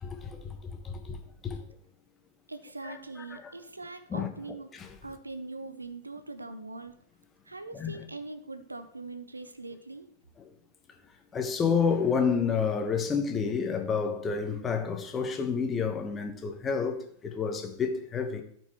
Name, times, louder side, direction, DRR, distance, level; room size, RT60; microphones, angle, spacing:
voice 1, 0.0-1.2 1.4-1.6 2.8-3.0 3.3-3.5 4.1-4.3 4.7-4.9 7.7-8.0 11.3-18.4, left 6 dB, 20° left, 1.0 m, -29 dB
voice 2, 2.5-4.7 5.0-7.0 7.4-10.1, right 3 dB, 80° right, 0.6 m, -42 dB
13.5 x 4.5 x 3.0 m
figure-of-eight pair, 90°, 0 cm